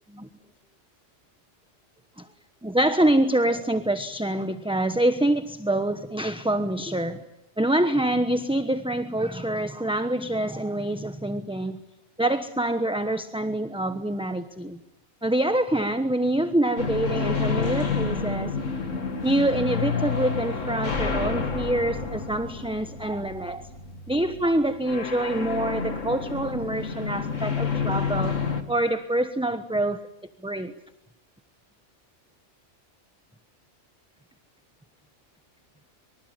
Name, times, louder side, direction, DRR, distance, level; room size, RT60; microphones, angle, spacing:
voice 1, 2.6-7.2 7.6-11.8 12.2-14.8 15.2-18.6 19.2-23.7 24.1-28.4 28.7-30.0 30.4-30.7, right 1 dB, 5° right, 9 dB, 1.0 m, -26 dB
sound 1, 16.8-28.6, left 5 dB, 85° left, 2.6 m, -29 dB
26.0 x 25.0 x 9.1 m, 0.86 s
omnidirectional pair, 1.3 m